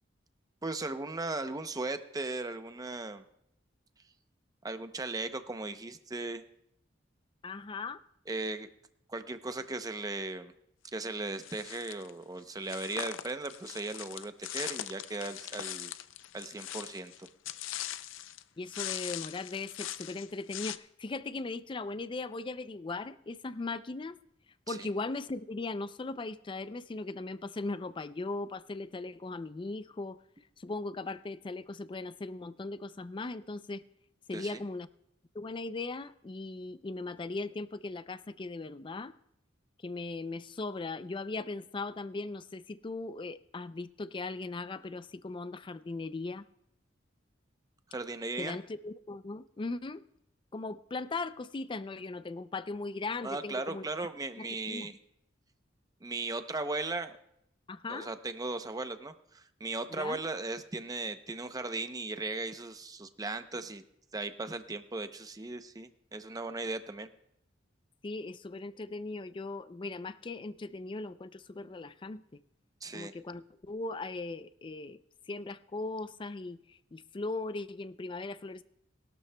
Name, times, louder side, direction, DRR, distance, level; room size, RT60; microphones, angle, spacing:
voice 1, 0.6-3.2 4.6-6.4 8.3-8.7 9.1-10.5 10.9-15.9 16.3-17.3 24.7-24.8 34.3-34.6 47.9-48.6 53.2-55.0 56.0-57.1 57.9-63.8 64.1-67.1 72.8-73.1, right 3 dB, 20° right, 9 dB, 0.6 m, -37 dB
voice 2, 7.4-8.0 18.6-24.2 24.7-30.2 30.6-33.8 34.3-34.9 35.3-39.1 39.8-46.5 48.4-50.0 50.5-53.8 54.4-54.9 57.7-58.1 59.9-60.2 68.0-72.4 72.9-75.0 75.3-78.6, left 3 dB, 25° left, 14 dB, 0.4 m, -38 dB
sound 1, 11.4-12.1 12.6-18.4 18.7-20.8, left 12 dB, 90° left, 0.5 m, -41 dB
20.5 x 12.5 x 2.2 m, 0.77 s
head